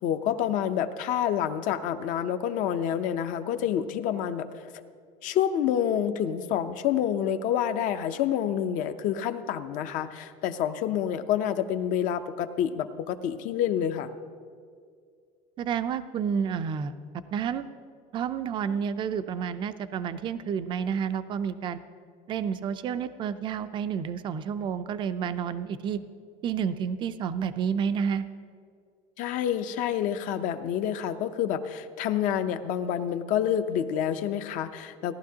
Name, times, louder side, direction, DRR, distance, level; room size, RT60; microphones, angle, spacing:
voice 1, 0.0-4.7 5.2-14.1 29.2-35.1, left 9 dB, 50° left, 9 dB, 0.7 m, -28 dB
voice 2, 15.6-17.0 17.3-17.7 18.1-21.8 22.3-26.0 26.4-28.2, right 7 dB, 30° right, 12 dB, 0.4 m, -30 dB
17.5 x 11.5 x 2.8 m, 2.2 s
cardioid pair, 145°, 17 cm